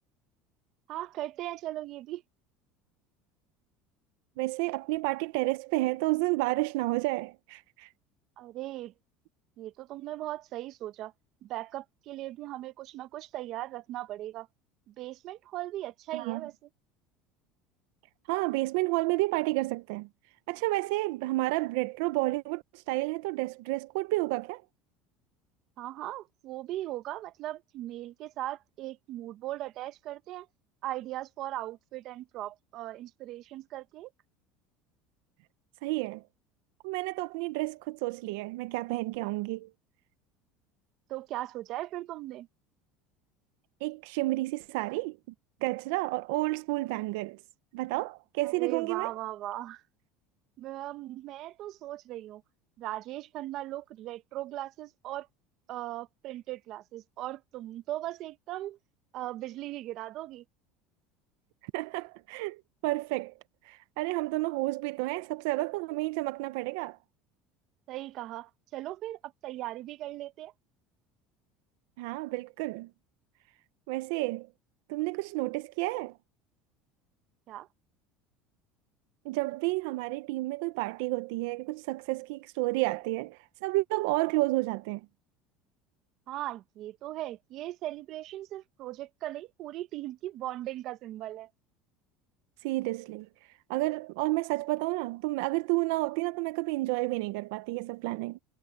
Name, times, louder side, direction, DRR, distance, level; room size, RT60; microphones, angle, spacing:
voice 1, 0.9-2.2 8.4-8.9 9.6-11.1 11.4-14.5 14.9-16.5 25.8-30.5 30.8-34.1 41.1-42.5 48.4-49.8 50.6-52.4 52.8-55.3 55.7-58.8 59.1-60.4 67.9-70.5 77.5-77.7 86.3-91.5, right 15 dB, 50° right, 0.9 m, -38 dB
voice 2, 4.4-7.9 16.1-16.4 18.3-20.1 20.5-24.6 35.8-36.2 36.8-39.7 43.8-45.2 45.6-47.4 47.7-49.1 61.6-63.3 63.6-67.0 72.0-72.9 73.9-74.5 74.9-76.2 79.2-85.1 92.6-93.3 93.7-98.4, right 21 dB, 80° right, 0.6 m, -31 dB
cardioid pair, 145°, 0 cm